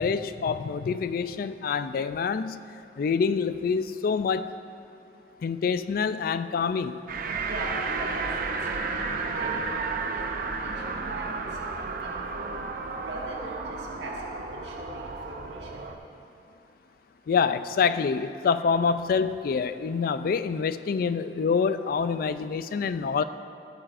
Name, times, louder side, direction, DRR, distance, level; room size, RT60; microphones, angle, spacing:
voice 1, 0.0-2.6 3.0-4.5 5.4-7.0 17.3-23.2, left 5 dB, 55° left, 13 dB, 0.3 m, -26 dB
sound 1, 7.1-16.0, right 4 dB, 50° right, 0.6 m, -32 dB
voice 2, 7.4-8.3 8.6-12.6 13.0-15.9, right 1 dB, 75° right, -3 dB, 1.6 m, -41 dB
15.0 x 8.8 x 2.5 m, 2.6 s
head